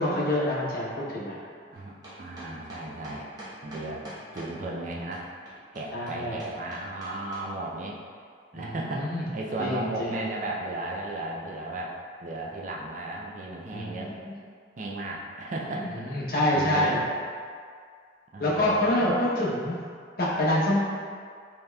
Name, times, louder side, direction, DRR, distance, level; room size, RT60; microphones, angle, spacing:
voice 1, 0.0-1.4 5.9-6.4 8.5-9.2 9.6-10.1 13.7-14.3 15.8-17.0 18.4-19.8 20.2-20.8, left 1 dB, 50° left, -6 dB, 0.8 m, -26 dB
sound 1, 1.7-4.5 5.1-7.4, right 1 dB, 20° right, 0.9 m, -44 dB
voice 2, 1.7-3.3 3.6-4.0 4.3-5.3 5.7-8.0 8.5-14.2 14.8-15.9 16.5-17.1 18.3-19.1, right 2 dB, 40° right, -2 dB, 0.4 m, -35 dB
5.0 x 2.9 x 2.2 m, 2.1 s
head